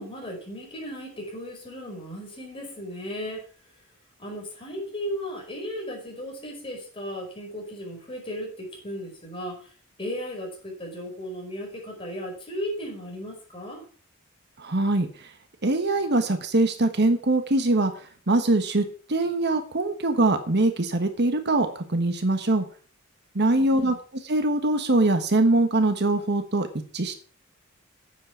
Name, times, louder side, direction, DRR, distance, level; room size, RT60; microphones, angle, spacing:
voice 1, 0.0-3.5 4.2-9.7 10.0-13.8 23.5-24.0, equal, 25° left, 0 dB, 4.9 m, -36 dB
voice 2, 14.6-15.3 15.6-22.6 23.3-23.9 24.2-26.7 26.9-27.2, right 2 dB, 55° right, 8 dB, 1.3 m, -23 dB
9.4 x 7.7 x 7.0 m, 0.42 s
head